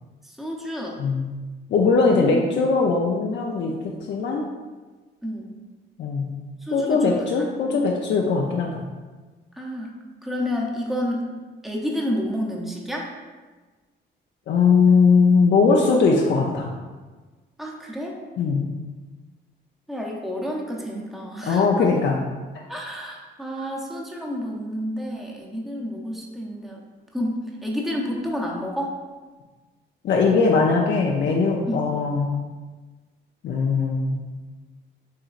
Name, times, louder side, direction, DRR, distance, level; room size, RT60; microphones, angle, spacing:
voice 1, 0.4-1.0 2.1-2.4 5.2-5.5 6.7-7.3 7.7-7.8 9.6-9.9 10.2-11.3 11.6-13.1 17.6-18.2 19.9-21.9 22.7-26.8 27.1-27.3 27.6-29.0 31.7-31.9, equal, ahead, -2 dB, 0.8 m, -30 dB
voice 2, 1.0-1.3 1.7-4.5 6.0-6.3 6.7-8.9 14.5-16.7 18.4-18.7 21.4-22.2 30.0-32.4 33.4-34.2, left 4 dB, 65° left, -1 dB, 0.6 m, -20 dB
6.6 x 3.0 x 2.5 m, 1.3 s
cardioid pair, 90°, 20 cm